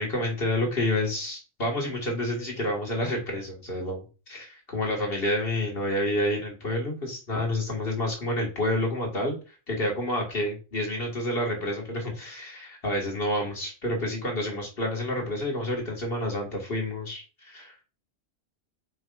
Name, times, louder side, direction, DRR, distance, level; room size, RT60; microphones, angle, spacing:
voice 1, 0.0-9.3 9.7-17.8, left 1 dB, 45° left, 0 dB, 2.2 m, -29 dB
7.7 x 5.4 x 2.5 m, 0.32 s
omnidirectional pair, 1.4 m